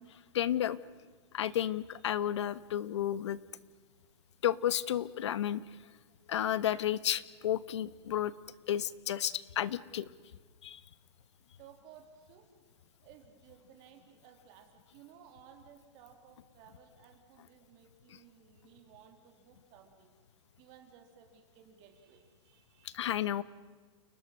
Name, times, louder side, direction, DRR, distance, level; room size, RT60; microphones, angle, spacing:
voice 1, 0.1-0.8 1.3-3.4 4.4-5.6 6.3-8.3 8.7-10.1 10.6-10.8 18.1-18.2 22.8-23.4, left 11 dB, 80° left, 17 dB, 1.2 m, -32 dB
voice 2, 11.6-12.5 13.0-20.1 20.6-23.0, right 8 dB, 30° right, 5 dB, 2.8 m, -58 dB
29.5 x 19.5 x 6.4 m, 1.4 s
supercardioid pair, 170°, 15 cm